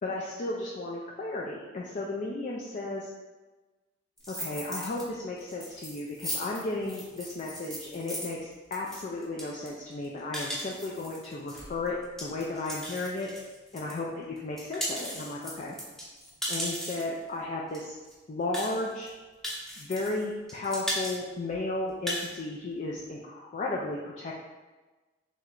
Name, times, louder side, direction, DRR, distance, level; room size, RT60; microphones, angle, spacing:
voice 1, 0.0-3.1 4.3-13.3 13.7-15.8 16.5-18.0 18.3-19.1 19.8-24.3, left 2 dB, 40° left, -2 dB, 0.4 m, -34 dB
sound 1, 4.2-5.0 5.4-14.0 14.4-17.2 17.7-17.8 18.0-18.1 18.5-19.1 19.4-20.2 20.5-21.2 21.5-21.6 21.9-22.3, equal, ahead, 0.8 m, -37 dB
3.2 x 3.0 x 3.7 m, 1.2 s
head